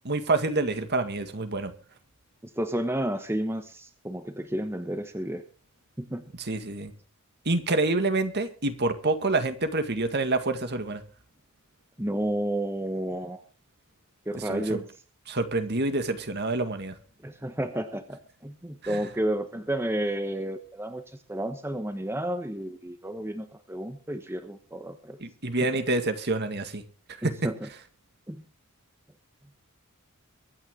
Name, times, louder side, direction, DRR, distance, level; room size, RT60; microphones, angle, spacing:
voice 1, 0.0-1.7 6.4-6.9 7.5-11.0 14.3-14.8 15.3-17.0 18.8-19.0 25.2-26.8 27.2-27.4, right 2 dB, 50° right, 9 dB, 1.9 m, -27 dB
voice 2, 2.6-5.4 6.0-6.2 12.0-13.4 14.3-14.9 17.2-21.0 21.3-25.2 25.6-25.7 27.2-27.6 28.3-28.4, right 1 dB, 10° right, 8 dB, 1.1 m, -31 dB
23.5 x 9.8 x 3.8 m, 0.37 s
head